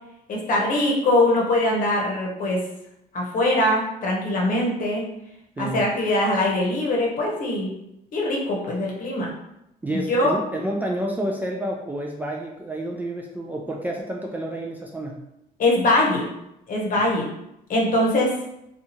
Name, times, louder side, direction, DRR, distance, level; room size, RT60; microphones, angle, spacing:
voice 1, 0.3-2.6 3.1-5.0 5.6-7.7 8.1-9.3 9.9-10.4 15.6-16.3 16.7-17.3 17.7-18.3, left 1 dB, 55° left, -2 dB, 0.9 m, -22 dB
voice 2, 9.8-15.2, right 1 dB, 10° right, -1 dB, 0.3 m, -29 dB
2.7 x 2.3 x 2.7 m, 0.82 s
cardioid pair, 110°, 17 cm